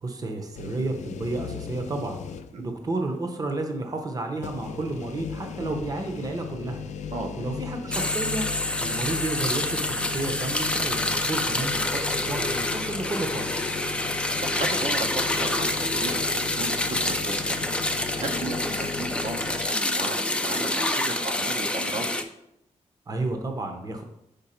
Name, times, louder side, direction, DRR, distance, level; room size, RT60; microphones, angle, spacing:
voice 1, 0.0-2.2 2.6-6.8 7.4-8.5 8.8-13.5 23.1-24.0, right 2 dB, 30° right, 5 dB, 0.7 m, -31 dB
sound 1, 0.5-2.7 3.1-3.2 4.4-19.7, left 7 dB, 65° left, 0.4 m, -37 dB
sound 2, 7.9-22.2, left 1 dB, 10° left, 0.4 m, -27 dB
voice 2, 14.4-17.6 18.2-22.1, right 3 dB, 65° right, 3 dB, 0.7 m, -35 dB
5.2 x 4.5 x 4.3 m, 0.81 s
wide cardioid pair, 140°, 13 cm